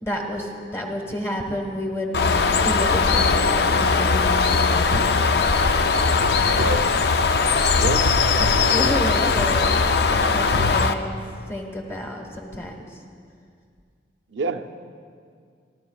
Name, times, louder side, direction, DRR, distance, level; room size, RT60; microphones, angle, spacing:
voice 1, 0.0-2.1 2.6-5.0 8.4-12.9, left 1 dB, 15° left, 2 dB, 1.3 m, -30 dB
Bird, 2.1-10.9, left 4 dB, 60° left, 0.5 m, -19 dB
voice 2, 6.5-6.9 7.7-8.1 8.6-9.0 14.3-14.7, right 3 dB, 90° right, 7 dB, 0.6 m, -28 dB
27.0 x 12.5 x 2.3 m, 2.1 s
head